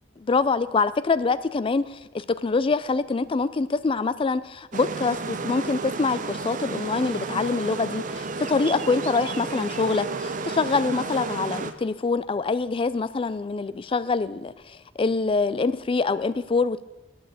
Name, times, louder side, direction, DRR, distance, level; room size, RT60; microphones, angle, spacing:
voice 1, 0.2-16.8, left 4 dB, 30° left, 16 dB, 0.4 m, -25 dB
sound 1, 4.7-11.7, right 4 dB, 45° right, 0.6 m, -32 dB
9.2 x 6.3 x 7.8 m, 1.1 s
head